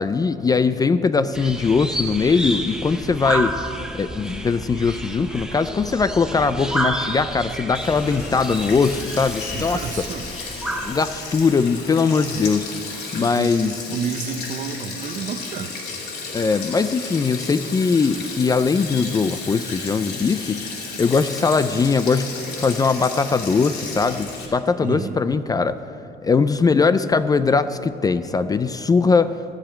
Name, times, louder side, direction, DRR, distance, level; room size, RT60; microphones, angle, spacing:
voice 1, 0.0-3.5 3.9-9.8 10.8-12.7 13.1-13.8 16.3-20.6 21.0-22.3 22.6-25.8 26.2-29.3, left 4 dB, 20° left, 13 dB, 0.3 m, -20 dB
sound 1, 1.3-11.7, right 1 dB, 5° right, 0.8 m, -30 dB
Sink (filling or washing), 7.7-24.5, left 4 dB, 70° left, 2.6 m, -33 dB
voice 2, 9.5-10.3 13.1-15.7 24.8-25.2, right 6 dB, 50° right, 11 dB, 0.7 m, -30 dB
15.0 x 5.0 x 8.8 m, 2.6 s
cardioid pair, 110°, 17 cm